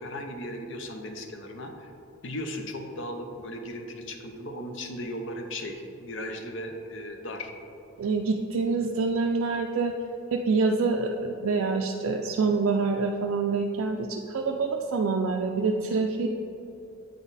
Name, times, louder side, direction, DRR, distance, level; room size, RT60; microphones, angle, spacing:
voice 1, 0.0-1.9 2.2-7.5, left 1 dB, 60° left, 4 dB, 0.6 m, -36 dB
voice 2, 8.0-10.0 10.3-16.3, right 4 dB, 75° right, 2 dB, 0.3 m, -26 dB
8.3 x 4.0 x 4.0 m, 2.9 s
head